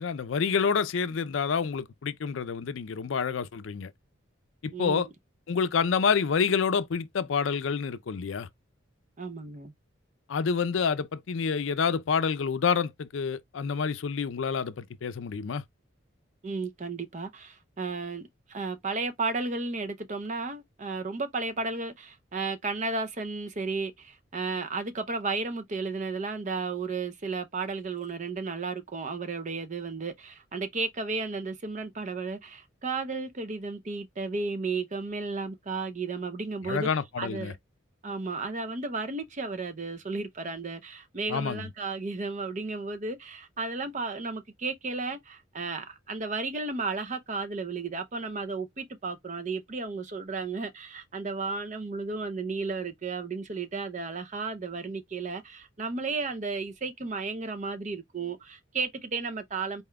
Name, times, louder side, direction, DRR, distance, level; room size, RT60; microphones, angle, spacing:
voice 1, 0.0-3.9 4.6-5.1 5.5-8.5 10.3-15.6 36.6-37.5 41.3-41.7, left 6 dB, 70° left, 0.4 m, -28 dB
voice 2, 4.7-5.0 9.2-9.7 16.4-36.9 37.2-37.6 38.0-59.8, right 4 dB, 40° right, 0.6 m, -33 dB
4.2 x 3.6 x 2.3 m
head